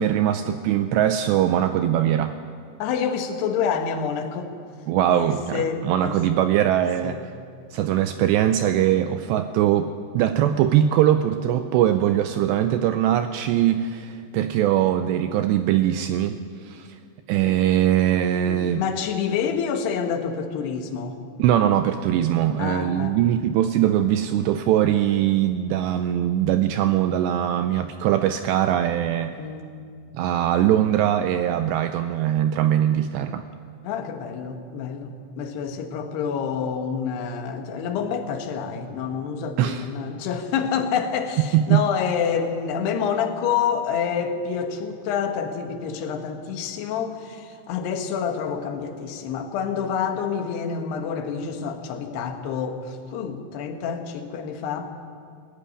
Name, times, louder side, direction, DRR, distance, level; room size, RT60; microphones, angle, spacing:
voice 1, 0.0-2.4 4.9-7.2 7.7-17.0 17.3-18.8 21.4-29.3 30.1-33.4 39.6-39.9 41.5-41.8, right 11 dB, 85° right, 9 dB, 2.5 m, -21 dB
voice 2, 2.8-4.5 5.1-6.2 7.0-7.2 17.5-17.6 18.5-21.2 22.6-23.2 29.4-29.7 33.8-55.0, left 7 dB, 65° left, 5 dB, 3.2 m, -28 dB
20.0 x 14.0 x 10.0 m, 2.2 s
omnidirectional pair, 5.5 m